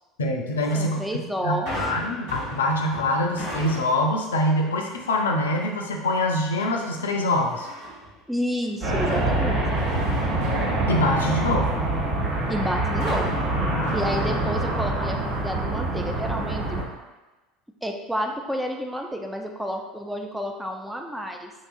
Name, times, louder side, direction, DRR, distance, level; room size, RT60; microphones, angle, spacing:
voice 1, 0.2-1.0 1.4-7.7 10.9-11.7 13.7-13.9, left 1 dB, 75° left, 2 dB, 0.3 m, -24 dB
voice 2, 0.7-1.8 8.3-9.6 12.5-13.3 13.9-16.8 17.8-21.5, equal, 5° right, 2 dB, 0.3 m, -30 dB
sound 1, 1.7-4.2 4.7-5.0 7.5-8.2 8.6-11.5 13.0-14.9 15.3-15.4, equal, 70° right, 1.3 m, -37 dB
sound 2, 8.8-16.8, right 2 dB, 50° right, 0.7 m, -25 dB
2.9 x 2.3 x 2.4 m, 1.1 s
figure-of-eight pair, 70°, 0 cm